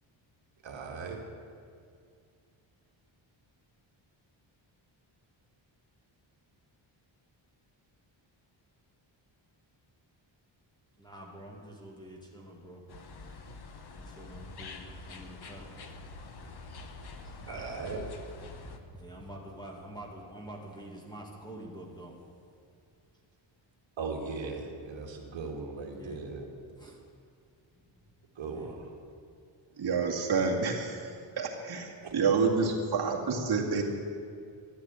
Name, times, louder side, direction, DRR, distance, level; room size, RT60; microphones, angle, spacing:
voice 1, 0.6-1.2 17.4-18.0 24.0-26.5 28.4-28.9 32.0-32.1, right 4 dB, 65° right, 1 dB, 2.3 m, -38 dB
voice 2, 11.0-12.8 13.9-15.7 16.7-17.9 18.6-22.2 25.9-26.2 26.8-27.0 28.5-28.7 32.0-32.1, right 1 dB, 10° left, -1 dB, 2.2 m, -47 dB
sound 1, 12.9-18.8, left 3 dB, 50° left, 1.2 m, -46 dB
voice 3, 29.8-33.8, right 4 dB, 50° right, -2 dB, 2.5 m, -28 dB
13.5 x 11.0 x 9.0 m, 2.3 s
wide cardioid pair, 180°, 48 cm